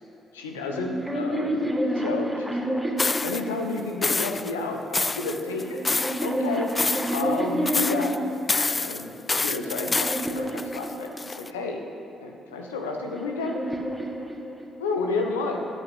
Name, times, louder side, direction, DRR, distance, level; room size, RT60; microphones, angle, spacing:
voice 1, 0.3-1.6 1.9-2.7 3.2-6.7 7.1-8.1 8.6-9.1 9.4-11.8 12.2-13.6 14.8-15.7, left 3 dB, 85° left, 2 dB, 1.1 m, -31 dB
sound 1, 0.7-4.1 5.0-8.4 9.1-11.5 12.5-14.9, equal, 10° right, 1.8 m, -30 dB
sound 2, 3.0-3.4 4.0-4.5 4.9-6.3 6.7-7.4 7.7-8.2 8.5-11.5, left 3 dB, 30° left, 0.4 m, -27 dB
12.5 x 6.5 x 7.9 m, 2.9 s
hypercardioid pair, 45°, 0 cm